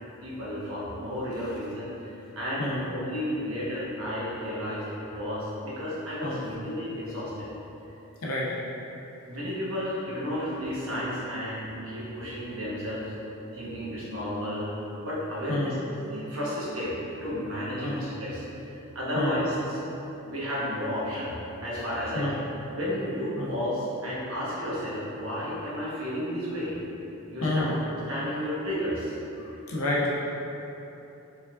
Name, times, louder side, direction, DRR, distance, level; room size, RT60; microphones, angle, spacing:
voice 1, 0.2-7.5 9.3-13.1 13.5-14.7 15.0-16.9 17.2-19.8 20.2-21.3 21.6-22.4 22.7-26.7 27.3-29.1, equal, 65° right, -8 dB, 1.1 m, -32 dB
voice 2, 8.2-8.6 15.5-15.7 17.8-18.0 19.1-19.4 22.1-22.4 23.4-23.5 27.4-27.8 29.4-30.2, left 1 dB, 75° left, -5 dB, 0.6 m, -29 dB
4.6 x 3.8 x 2.4 m, 3.0 s
head